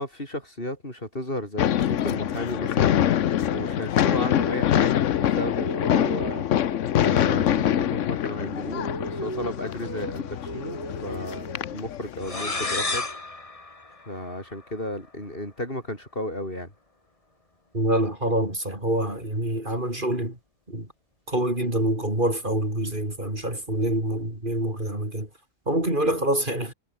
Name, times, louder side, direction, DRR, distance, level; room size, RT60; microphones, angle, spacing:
voice 1, 0.0-3.2 3.5-6.5 7.0-13.1 14.1-16.7, left 1 dB, 50° left, 8.2 m, -34 dB
sound 1, 1.6-13.0, left 10 dB, 85° left, 1.1 m, -25 dB
sound 2, 2.1-4.9 5.2-8.1 8.4-11.9, right 2 dB, 70° right, 4.5 m, -39 dB
sound 3, 12.2-14.8, left 2 dB, 30° left, 2.0 m, -32 dB
voice 2, 17.7-20.4 20.7-20.9 21.3-25.3 25.7-26.7, right 1 dB, 40° right, 6.5 m, -26 dB
omnidirectional pair, 1.3 m